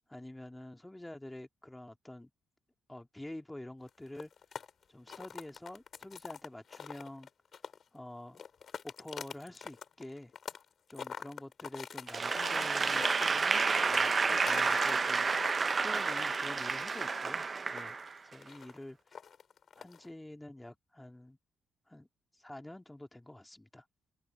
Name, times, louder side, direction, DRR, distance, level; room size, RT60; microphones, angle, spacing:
voice 1, 0.1-2.3 2.9-4.3 4.9-7.3 7.9-8.4 8.8-10.3 10.9-15.3 15.7-18.0 18.2-19.2 19.7-21.4 21.9-22.1 22.3-23.8, left 1 dB, 10° left, 2.2 m, -47 dB
sound 1, 3.9-8.0 8.3-10.6 10.9-14.9 15.2-20.1, left 7 dB, 50° left, 5.9 m, -45 dB
Applause / Crowd, 12.1-18.3, right 4 dB, 35° right, 0.6 m, -30 dB
cardioid pair, 90°, 0 cm